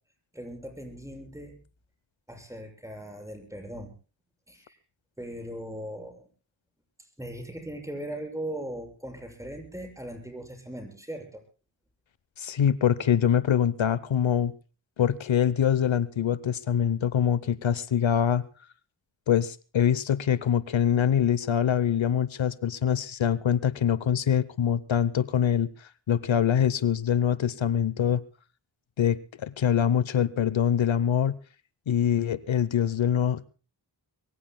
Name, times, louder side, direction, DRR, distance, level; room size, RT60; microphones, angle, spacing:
voice 1, 0.3-1.6 2.3-3.9 4.5-4.8 5.2-6.3 7.0-11.4, right 1 dB, 5° right, 3 dB, 7.1 m, -39 dB
voice 2, 12.4-14.5 15.0-18.4 19.3-28.2 29.0-31.4 31.9-33.4, left 9 dB, 85° left, 17 dB, 0.8 m, -24 dB
24.5 x 22.5 x 2.2 m, 0.35 s
wide cardioid pair, 60°, 45 cm